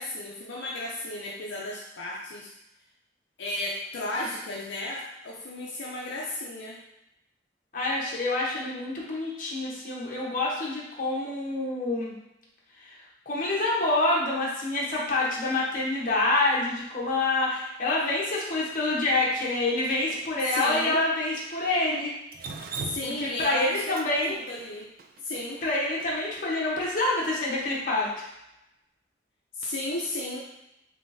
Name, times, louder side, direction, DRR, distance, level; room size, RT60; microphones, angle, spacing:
voice 1, 0.0-2.5 3.4-6.8 20.4-21.0 22.8-24.0 24.3-24.9 25.2-25.6 29.5-30.4, left 1 dB, 75° left, -4 dB, 0.5 m, -34 dB
voice 2, 7.7-12.1 12.8-13.0 13.3-22.1 23.0-24.4 25.6-28.3, left 2 dB, 45° left, -5 dB, 0.9 m, -27 dB
Drip, 22.3-26.4, right 4 dB, 50° right, 0.3 m, -39 dB
3.7 x 3.3 x 2.6 m, 0.88 s
head